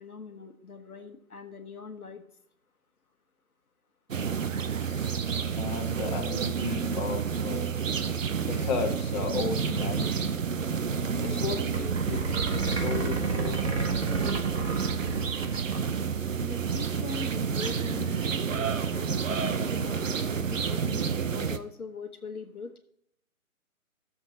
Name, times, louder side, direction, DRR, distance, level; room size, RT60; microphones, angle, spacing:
voice 1, 0.0-2.2 16.4-19.3 19.7-22.8, left 4 dB, 85° left, 6 dB, 1.3 m, -42 dB
sound 1, 4.1-21.6, right 6 dB, 65° right, 0.8 m, -30 dB
voice 2, 4.8-7.6 8.4-10.3 11.2-12.2 12.6-13.8, left 5 dB, 30° left, 0 dB, 1.5 m, -34 dB
sound 2, 11.7-15.9 16.2-16.3 16.5-16.8, right 3 dB, 45° right, 1.7 m, -32 dB
13.5 x 7.0 x 2.9 m, 0.71 s
figure-of-eight pair, 150°, 43 cm